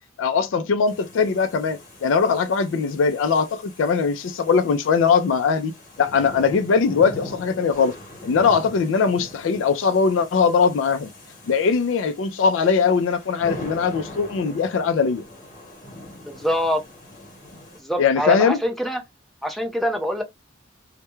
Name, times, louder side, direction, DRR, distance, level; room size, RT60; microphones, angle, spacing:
voice 1, 0.2-7.9 8.2-11.1 11.5-15.2 18.0-18.6, left 5 dB, 80° left, 0.4 m, -20 dB
sound 1, 0.9-17.8, left 1 dB, 45° left, 1.0 m, -42 dB
voice 2, 16.2-16.8 17.8-19.0 19.4-20.2, equal, ahead, 0.5 m, -24 dB
2.2 x 2.1 x 2.9 m
head